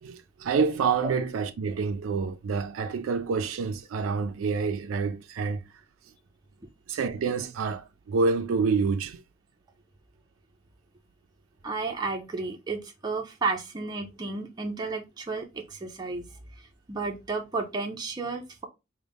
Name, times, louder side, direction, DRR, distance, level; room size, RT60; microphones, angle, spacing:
voice 1, 0.0-5.6 6.9-9.2, right 5 dB, 85° right, 0.4 m, -27 dB
voice 2, 11.6-16.3 16.6-18.7, right 3 dB, 20° right, 0.4 m, -32 dB
3.9 x 2.1 x 3.4 m
head